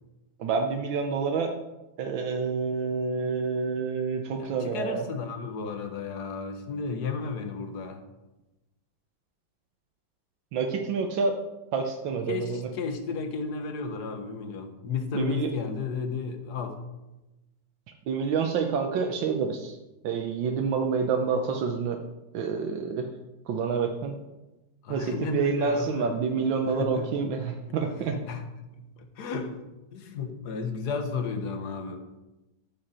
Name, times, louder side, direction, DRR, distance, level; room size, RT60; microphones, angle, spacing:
voice 1, 0.4-1.5 2.0-5.0 10.5-11.3 11.7-12.6 15.1-15.5 18.1-19.8 20.0-22.0 22.3-23.1 23.5-24.2 24.9-28.2, right 5 dB, 85° right, 3 dB, 1.6 m, -28 dB
voice 2, 4.4-8.0 12.3-16.8 24.8-26.2 26.6-27.2 27.7-28.5 28.8-29.6 29.9-32.0, left 5 dB, 60° left, 7 dB, 1.6 m, -33 dB
13.0 x 7.9 x 4.3 m, 1.0 s
omnidirectional pair, 2.0 m